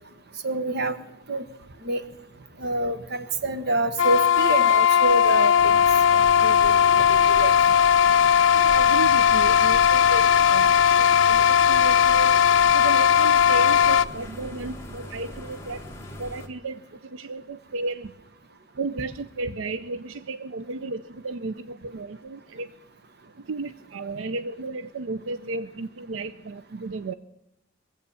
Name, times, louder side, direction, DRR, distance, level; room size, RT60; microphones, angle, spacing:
voice 1, 0.4-1.0 1.3-1.5 1.8-2.0 2.6-5.8 6.1-7.6, right 2 dB, 55° right, 10 dB, 1.1 m, -27 dB
sound 1, 4.0-14.1, left 8 dB, 70° left, 0.5 m, -18 dB
sound 2, 5.6-16.5, left 1 dB, 15° left, 1.6 m, -40 dB
voice 2, 8.5-12.4 12.7-15.8 16.2-18.1 18.8-22.7 23.5-27.1, right 3 dB, 90° right, 13 dB, 0.5 m, -33 dB
21.5 x 8.1 x 6.9 m, 0.87 s
head